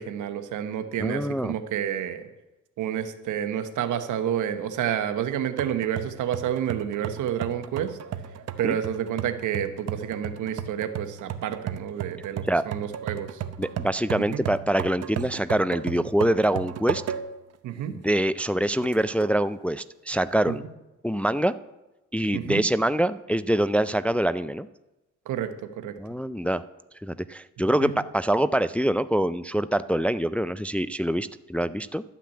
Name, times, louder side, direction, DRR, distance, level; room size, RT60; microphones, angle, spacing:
voice 1, 0.0-2.3 2.8-8.0 8.6-13.4 14.3-14.4 17.6-18.0 20.5-20.6 22.3-22.6 25.3-26.0 27.8-27.9, right 9 dB, 80° right, 9 dB, 1.1 m, -29 dB
voice 2, 1.0-1.5 8.6-8.8 12.5-12.6 13.6-17.0 17.9-20.6 21.0-21.5 22.1-24.7 26.0-26.6 27.0-32.0, right 1 dB, 5° left, 14 dB, 0.3 m, -25 dB
sound 1, 5.6-17.5 18.0-18.1 18.8-19.4, right 9 dB, 55° right, 0.8 m, -35 dB
12.0 x 5.9 x 8.3 m, 1.0 s
cardioid pair, 90°, 30 cm